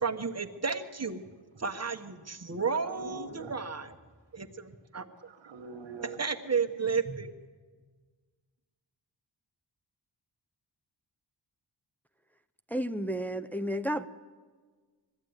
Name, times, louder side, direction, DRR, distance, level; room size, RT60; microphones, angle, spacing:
voice 1, 0.0-1.2 1.6-3.9 4.3-5.1 6.2-7.3, right 5 dB, 35° right, 5 dB, 1.3 m, -32 dB
voice 2, 2.4-3.7 5.2-6.2, right 5 dB, 75° right, 3 dB, 1.6 m, -45 dB
voice 3, 12.7-14.1, equal, 5° left, 7 dB, 0.7 m, -32 dB
21.5 x 14.5 x 9.6 m, 1.5 s
wide cardioid pair, 95°, 44 cm